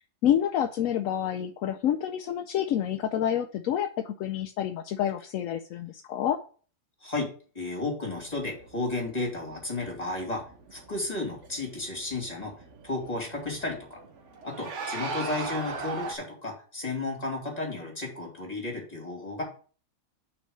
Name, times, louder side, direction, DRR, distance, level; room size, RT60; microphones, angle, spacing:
voice 1, 0.2-6.4, left 10 dB, 75° left, 6 dB, 1.0 m, -28 dB
voice 2, 7.0-10.4 10.7-12.5 12.8-14.0 14.4-19.4, left 2 dB, 25° left, 0 dB, 3.0 m, -33 dB
sound 1, 8.1-16.1, right 3 dB, 60° right, 1.4 m, -40 dB
6.1 x 4.6 x 6.6 m, 0.41 s
omnidirectional pair, 1.5 m